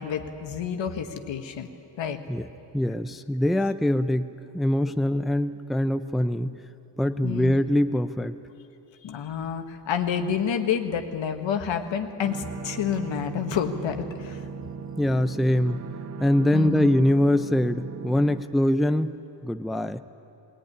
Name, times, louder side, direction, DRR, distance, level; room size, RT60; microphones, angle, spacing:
voice 1, 0.0-1.7 2.0-2.2 7.2-7.5 9.0-14.4 16.5-16.9, left 8 dB, 80° left, 6 dB, 1.6 m, -29 dB
voice 2, 2.7-6.6 7.0-8.3 15.0-15.8 16.2-19.2 19.4-20.0, left 1 dB, ahead, 9 dB, 0.5 m, -23 dB
sound 1, 12.2-18.4, right 6 dB, 35° right, 0.8 m, -37 dB
21.0 x 18.0 x 9.9 m, 2.8 s
cardioid pair, 95°, 45 cm